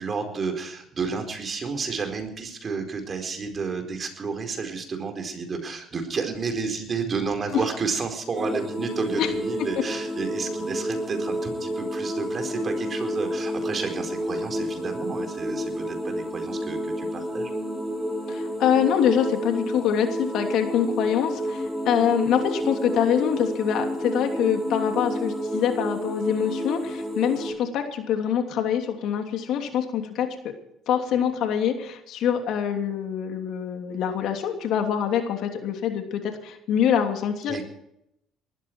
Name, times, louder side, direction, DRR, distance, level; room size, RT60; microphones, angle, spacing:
voice 1, 0.0-17.5 37.5-37.6, right 5 dB, 35° right, 5 dB, 4.5 m, -31 dB
sound 1, 8.3-27.5, equal, 5° left, 5.6 m, -30 dB
voice 2, 18.3-30.5 30.9-37.6, left 8 dB, 65° left, 5 dB, 3.0 m, -25 dB
19.5 x 13.5 x 4.7 m, 0.77 s
supercardioid pair, 95°, 0 cm